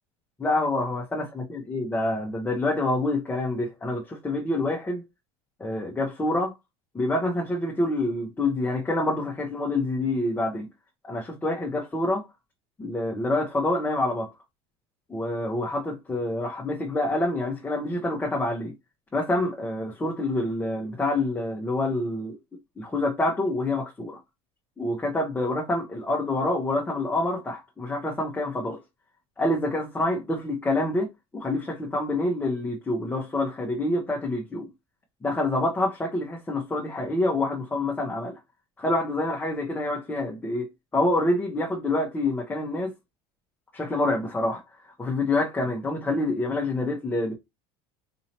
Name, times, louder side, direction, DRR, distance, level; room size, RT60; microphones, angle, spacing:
voice 1, 0.4-5.0 5.6-6.5 6.9-10.7 11.1-12.3 12.8-14.3 15.1-18.7 19.1-22.4 22.8-24.2 24.8-28.8 29.4-34.7 35.2-38.4 38.8-42.9 43.7-44.6 45.0-47.3, left 2 dB, 15° left, 0.9 m, -27 dB
4.3 x 2.7 x 2.9 m
supercardioid pair, 120°, 13 cm